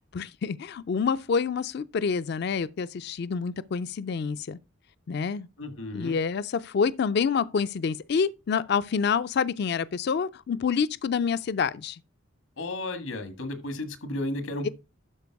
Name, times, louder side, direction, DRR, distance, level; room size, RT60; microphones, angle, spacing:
voice 1, 0.1-4.6 5.1-5.5 5.9-12.0 14.6-14.7, left 6 dB, 55° left, 0.4 m, -27 dB
voice 2, 5.6-6.2 12.6-14.7, left 1 dB, 90° left, 1.8 m, -33 dB
12.0 x 4.5 x 4.6 m
head